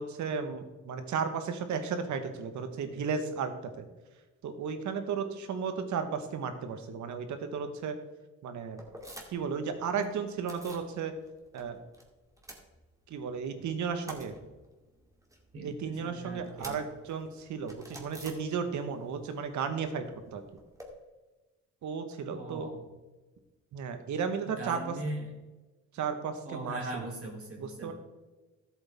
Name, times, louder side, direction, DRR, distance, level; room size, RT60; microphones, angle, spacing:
voice 1, 0.0-3.5 3.8-3.9 4.4-7.9 8.4-8.8 9.3-11.1 11.5-11.8 13.1-14.3 15.6-20.0 20.3-20.4 21.8-22.7 23.7-24.8 25.9-26.8 27.6-27.9, right 6 dB, 70° right, 8 dB, 1.3 m, -34 dB
sound 1, 8.8-9.6 9.8-10.9 11.2-12.0 12.3-13.3 13.6-19.0 19.3-20.9, right 1 dB, 10° right, 2.3 m, -50 dB
voice 2, 15.5-16.8 22.3-22.8 24.6-25.3 26.4-27.9, right 1 dB, 50° right, -2 dB, 3.3 m, -39 dB
13.0 x 7.9 x 3.6 m, 1.2 s
cardioid pair, 90°, 30 cm